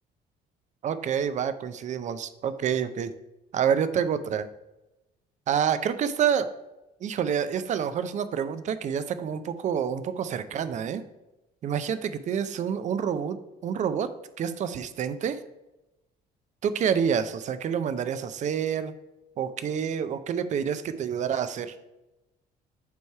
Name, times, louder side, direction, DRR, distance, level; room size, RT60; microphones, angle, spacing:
voice 1, 0.8-3.1 3.5-4.5 5.5-6.5 7.0-11.0 11.6-14.1 14.4-15.4 16.6-18.9 19.4-21.7, right 8 dB, 45° right, 12 dB, 0.5 m, -28 dB
8.2 x 3.3 x 4.5 m, 0.97 s
cardioid pair, 110°, 17 cm